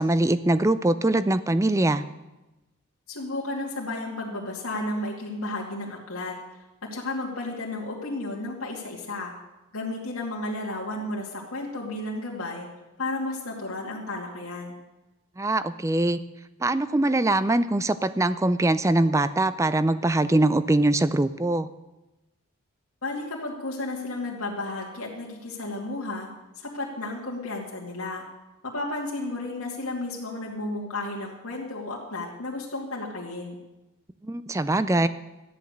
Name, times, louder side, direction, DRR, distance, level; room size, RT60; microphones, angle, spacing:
voice 1, 0.0-2.0 15.4-16.2 16.6-21.7 34.2-35.1, right 2 dB, 15° right, 14 dB, 0.4 m, -22 dB
voice 2, 3.1-6.3 6.9-9.3 9.7-12.7 13.0-14.8 23.0-26.3 26.6-28.2 28.6-33.5, left 2 dB, 85° left, -3 dB, 2.4 m, -33 dB
13.5 x 10.5 x 6.6 m, 1.0 s
head